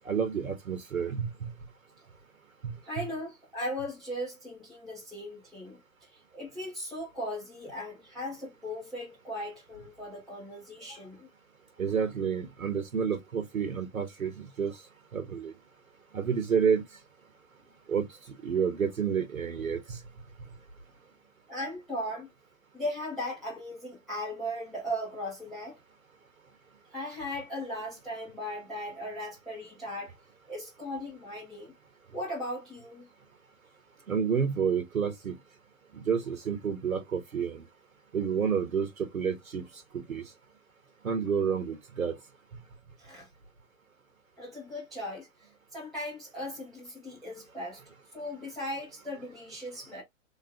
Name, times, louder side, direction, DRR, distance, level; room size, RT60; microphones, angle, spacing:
voice 1, 0.1-1.5 2.6-3.0 11.8-14.7 15.1-15.5 16.1-16.8 17.9-18.1 18.4-19.8 34.1-35.3 36.1-37.6 38.1-39.6 40.1-40.2 41.0-42.1, right 6 dB, 80° right, 0.9 m, -29 dB
voice 2, 2.9-5.8 6.3-11.3 21.5-22.3 22.7-25.8 26.9-30.1 30.5-31.7 32.1-33.1 43.0-43.3 44.4-45.3 45.7-47.8 48.1-50.0, equal, ahead, 0.3 m, -37 dB
3.5 x 2.0 x 2.8 m
figure-of-eight pair, 105°, 41 cm